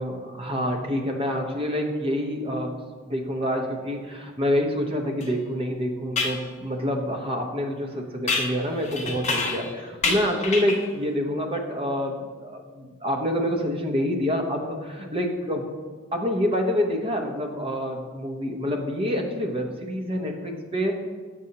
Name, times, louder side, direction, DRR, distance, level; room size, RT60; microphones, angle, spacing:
voice 1, 0.0-2.8 3.0-15.7 16.1-20.9, equal, 25° right, 2 dB, 0.7 m, -27 dB
sound 1, 5.2-5.3 6.2-6.4 8.3-9.7 10.0-10.9, left 3 dB, 35° left, 0.6 m, -27 dB
6.9 x 6.3 x 2.8 m, 1.5 s
head